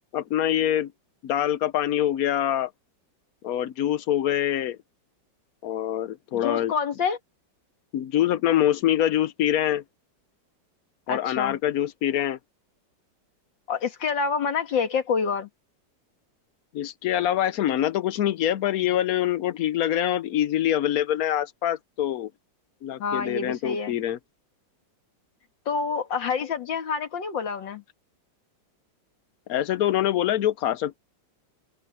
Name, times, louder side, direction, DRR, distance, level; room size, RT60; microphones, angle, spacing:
voice 1, 0.1-0.9 1.2-2.7 3.4-4.8 5.6-6.7 7.9-9.8 11.1-12.4 16.7-22.3 22.8-24.2 29.5-31.0, left 11 dB, 65° left, 1.0 m, -25 dB
voice 2, 6.3-7.2 11.1-11.6 13.7-15.5 23.0-23.9 25.7-27.8, left 5 dB, 80° left, 2.5 m, -27 dB
open air
omnidirectional pair, 2.0 m